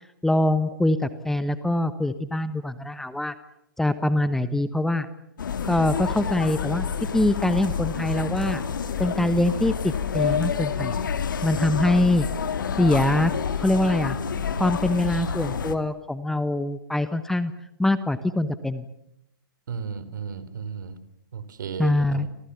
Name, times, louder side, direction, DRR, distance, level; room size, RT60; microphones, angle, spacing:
voice 1, 0.2-3.3 3.8-5.1 5.6-6.9 7.1-8.6 9.0-10.9 11.4-12.3 12.8-14.2 14.6-17.5 17.8-18.9 21.8-22.3, left 1 dB, 5° left, 13 dB, 1.1 m, -23 dB
sound 1, 5.4-15.7, left 6 dB, 60° left, 2.6 m, -28 dB
voice 2, 19.7-21.0 21.3-22.3, right 6 dB, 60° right, 14 dB, 3.9 m, -34 dB
30.0 x 25.5 x 7.1 m, 0.84 s
figure-of-eight pair, 120°, 12 cm